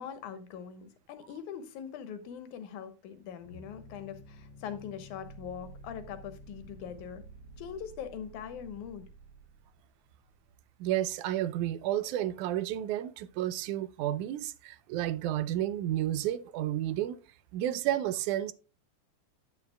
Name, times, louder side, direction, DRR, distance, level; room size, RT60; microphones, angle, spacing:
voice 1, 0.0-7.2 7.6-9.1, left 8 dB, 85° left, 2.5 m, -42 dB
sound 1, 3.4-10.6, right 1 dB, 65° left, 1.5 m, -51 dB
voice 2, 10.8-17.2 17.5-18.5, right 12 dB, 90° right, 2.1 m, -31 dB
9.5 x 8.9 x 2.2 m
omnidirectional pair, 3.5 m